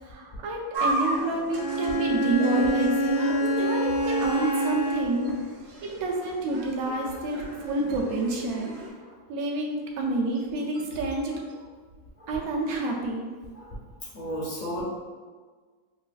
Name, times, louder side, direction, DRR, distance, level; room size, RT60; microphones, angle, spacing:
voice 1, 0.0-5.3 5.8-8.8 9.3-11.5 12.3-13.3, right 2 dB, 75° right, -1 dB, 1.1 m, -28 dB
sound 1, 0.7-8.9, right 2 dB, 60° right, 0.7 m, -35 dB
Bowed string instrument, 1.5-5.3, right 1 dB, 85° left, 1.4 m, -26 dB
voice 2, 14.1-14.8, equal, 65° left, -5 dB, 0.4 m, -34 dB
4.8 x 2.4 x 2.3 m, 1.5 s
omnidirectional pair, 1.6 m